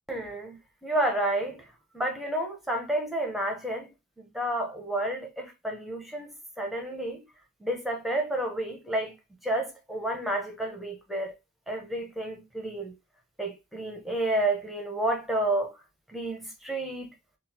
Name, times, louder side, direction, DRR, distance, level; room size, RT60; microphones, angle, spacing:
voice 1, 0.1-1.7 1.9-3.9 4.2-7.2 7.6-9.1 9.4-11.3 11.7-12.9 13.4-15.8 16.1-17.1, right 1 dB, ahead, 0.8 m, -30 dB
3.8 x 2.4 x 2.8 m
head